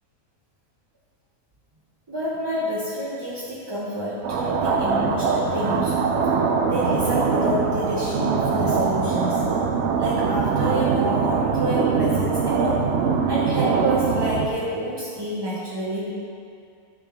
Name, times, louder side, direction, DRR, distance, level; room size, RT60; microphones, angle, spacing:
voice 1, 2.1-6.0 6.7-9.5 10.0-13.0 13.3-16.1, equal, 25° right, -7 dB, 0.5 m, -28 dB
sound 1, 4.2-14.5, right 5 dB, 65° right, 0.7 m, -22 dB
9.8 x 3.7 x 5.9 m, 2.4 s
omnidirectional pair, 1.6 m